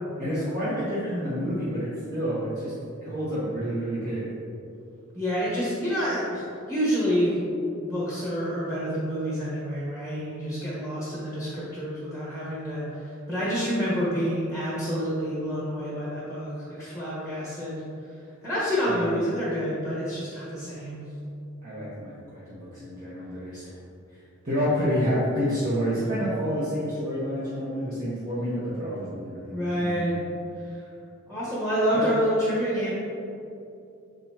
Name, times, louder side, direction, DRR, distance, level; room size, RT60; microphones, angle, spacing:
voice 1, 0.2-2.7 3.0-4.3 18.9-19.0 21.6-23.7 24.4-30.0 31.9-32.0, equal, 40° right, -10 dB, 1.2 m, -29 dB
voice 2, 5.1-7.3 7.8-17.8 18.4-21.1 29.5-30.2 31.3-32.9, equal, 5° right, -8 dB, 1.2 m, -28 dB
6.9 x 5.3 x 2.9 m, 2.7 s
head